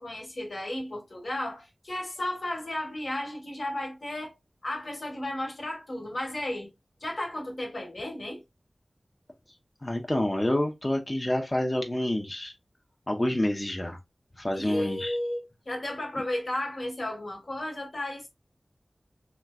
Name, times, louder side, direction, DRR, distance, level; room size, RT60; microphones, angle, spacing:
voice 1, 0.0-4.3 4.6-6.7 7.0-8.4 14.5-18.3, left 1 dB, 70° left, 1.2 m, -34 dB
voice 2, 9.8-12.5 13.1-14.0 14.4-15.2, left 1 dB, 25° left, 0.5 m, -28 dB
3.2 x 2.9 x 2.2 m
wide cardioid pair, 70°, 0 cm